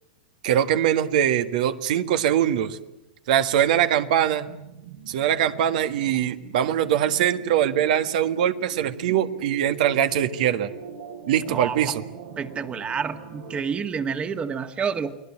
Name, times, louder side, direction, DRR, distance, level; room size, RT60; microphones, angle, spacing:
voice 1, 0.4-2.8 3.3-4.5 5.1-10.7 11.3-12.0, right 10 dB, 65° right, 10 dB, 1.7 m, -22 dB
sound 1, 4.3-13.6, right 6 dB, 80° right, 6.3 m, -42 dB
voice 2, 11.5-12.0 12.4-15.2, right 6 dB, 25° right, 9 dB, 1.8 m, -29 dB
29.5 x 19.5 x 8.7 m, 0.90 s
hypercardioid pair, 110°, 5 cm